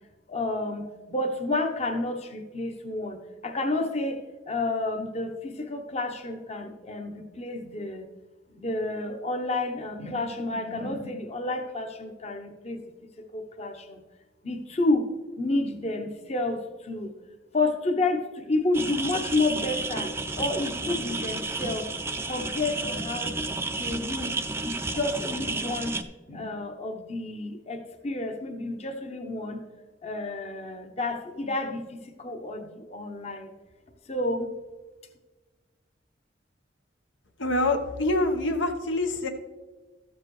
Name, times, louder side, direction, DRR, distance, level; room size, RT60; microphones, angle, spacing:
voice 1, 0.3-3.2 3.4-4.2 4.5-8.1 8.6-12.8 13.3-14.0 14.4-15.1 15.4-17.1 17.5-20.1 20.4-21.9 22.2-23.3 23.7-26.0 26.3-29.6 30.0-33.5 34.1-34.5, left 2 dB, 35° left, 4 dB, 0.9 m, -30 dB
sound 1, 18.7-26.0, right 3 dB, 15° right, 0.4 m, -32 dB
voice 2, 37.4-39.3, left 2 dB, 85° left, 5 dB, 1.0 m, -25 dB
13.5 x 7.4 x 3.1 m, 1.2 s
head